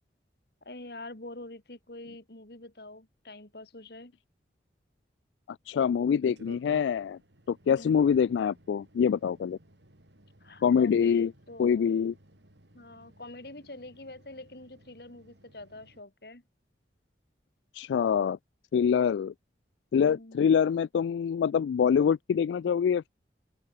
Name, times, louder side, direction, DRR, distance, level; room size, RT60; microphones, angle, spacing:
voice 1, 0.6-4.1 7.7-8.1 10.4-11.9 12.7-16.4 19.9-20.4, left 2 dB, 60° left, 2.8 m, -45 dB
voice 2, 5.7-7.2 7.5-9.6 10.6-11.3 11.6-12.1 17.7-18.4 18.7-19.3 19.9-23.1, left 7 dB, 90° left, 0.3 m, -25 dB
sound 1, 6.2-16.0, right 1 dB, 90° right, 5.2 m, -56 dB
open air
head